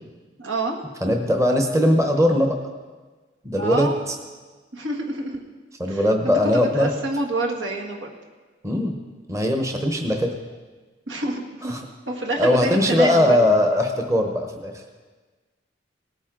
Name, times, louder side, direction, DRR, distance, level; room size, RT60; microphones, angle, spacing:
voice 1, 0.4-0.8 3.6-4.0 4.7-5.3 5.9-8.1 11.1-11.8 12.1-13.5, right 2 dB, 80° right, 0 dB, 1.7 m, -27 dB
voice 2, 1.0-2.6 3.4-4.1 5.8-6.9 8.6-8.9 9.3-10.3 11.6-11.8 12.4-14.7, left 1 dB, 15° right, 3 dB, 0.9 m, -20 dB
18.5 x 9.1 x 3.8 m, 1.4 s
head